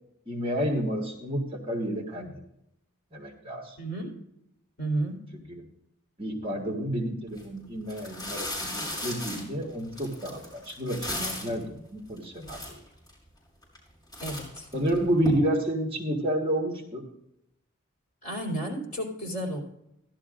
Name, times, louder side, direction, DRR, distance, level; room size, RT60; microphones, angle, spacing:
voice 1, 0.3-2.4 3.1-3.8 5.5-5.6 6.2-12.8 14.7-17.0, right 1 dB, 25° right, -1 dB, 1.5 m, -30 dB
voice 2, 3.8-4.1 4.8-5.2 14.2-14.7 18.2-19.6, right 1 dB, 40° left, -1 dB, 3.2 m, -32 dB
sound 1, 7.3-7.4 7.9-11.6 12.2-12.3 12.4-13.1 13.6-13.9 14.1-15.3, left 1 dB, 20° left, 5.1 m, -36 dB
15.5 x 11.5 x 2.5 m, 0.81 s
head